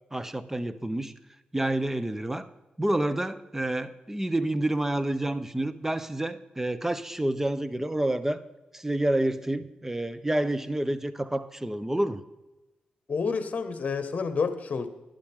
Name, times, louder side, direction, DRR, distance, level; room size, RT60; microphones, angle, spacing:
voice 1, 0.1-1.1 1.5-2.5 2.8-8.4 8.7-12.2, right 1 dB, 10° right, 14 dB, 0.8 m, -28 dB
voice 2, 13.1-14.9, left 5 dB, 50° left, 9 dB, 1.3 m, -29 dB
11.5 x 10.5 x 3.6 m, 1.1 s
cardioid pair, 65°, 3 cm